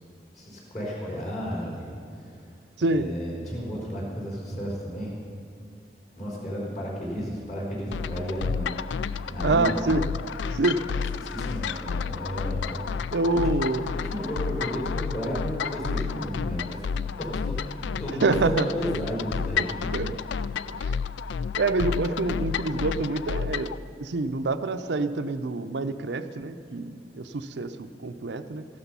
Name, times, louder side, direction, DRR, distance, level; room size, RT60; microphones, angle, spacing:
voice 1, 0.3-2.4 2.9-5.1 6.2-8.8 9.3-10.0 11.3-12.9 13.3-13.4 14.0-16.8 17.2-17.3 17.6-19.9, equal, 40° left, -4 dB, 4.3 m, -33 dB
voice 2, 2.8-3.1 9.4-10.1 10.5-10.8 13.1-13.9 18.2-18.7 19.6-19.7 19.9-20.2 20.7-21.0 21.6-23.7 24.0-28.7, right 3 dB, 75° right, 9 dB, 0.6 m, -26 dB
sound 1, 7.9-23.8, left 6 dB, 80° left, 0.3 m, -31 dB
15.0 x 12.0 x 5.5 m, 2.4 s
head